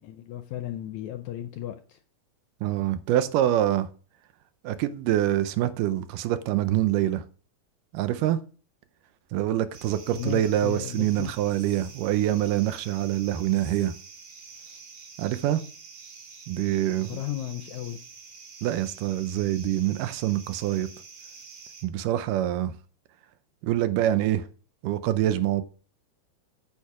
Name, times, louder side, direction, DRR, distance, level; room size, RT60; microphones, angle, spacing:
voice 1, 0.0-2.0 10.1-11.3 16.9-18.0, left 12 dB, 80° left, 1.7 m, -35 dB
voice 2, 2.6-3.9 4.6-7.2 7.9-8.4 9.3-13.9 15.2-15.6 16.5-17.2 18.6-20.9 21.8-22.7 23.6-24.5 24.8-25.6, right 13 dB, 80° right, 2.2 m, -25 dB
sound 1, 9.7-21.8, right 5 dB, 55° right, 2.6 m, -47 dB
8.5 x 6.5 x 4.8 m
omnidirectional pair, 3.9 m